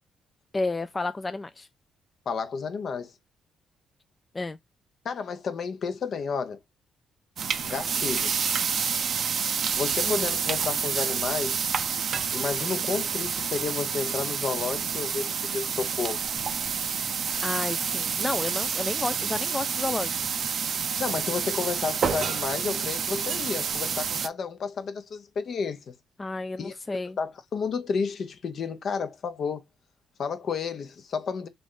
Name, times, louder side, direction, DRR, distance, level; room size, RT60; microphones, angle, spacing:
voice 1, 0.5-1.7 4.3-4.6 10.0-10.2 17.4-20.1 26.2-27.2, left 3 dB, 25° left, 0.3 m, -31 dB
voice 2, 2.3-3.1 5.0-6.6 7.6-8.3 9.8-11.6 12.3-16.2 21.0-25.9 26.6-26.7 27.2-29.6 30.2-31.5, left 5 dB, 55° left, 0.7 m, -31 dB
sound 1, 7.4-24.3, right 6 dB, 55° right, 0.4 m, -28 dB
3.4 x 2.5 x 3.7 m
cardioid pair, 90°, 0 cm